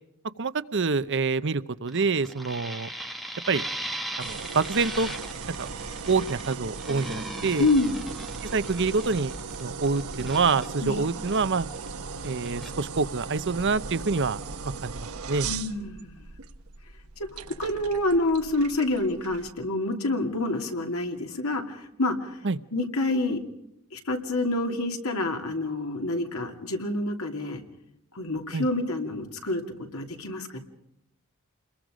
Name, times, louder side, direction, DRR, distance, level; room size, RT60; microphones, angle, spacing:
voice 1, 0.4-2.9 3.5-3.6 4.2-5.1 5.6-5.7 6.1-7.7 8.4-11.7 12.2-15.5 22.4-22.6 28.5-28.6, right 4 dB, 55° right, 14 dB, 0.8 m, -26 dB
sound 1, 1.9-11.9 12.2-12.7, right 1 dB, ahead, 1.5 m, -38 dB
sound 2, 4.2-19.5, right 5 dB, 75° right, 1.0 m, -38 dB
voice 2, 7.6-7.9 10.8-11.0 15.4-16.3 17.3-22.4 22.7-23.4 23.9-27.6 28.1-29.6 29.9-30.6, left 2 dB, 75° left, 4 dB, 2.9 m, -27 dB
28.5 x 21.5 x 5.1 m, 0.81 s
head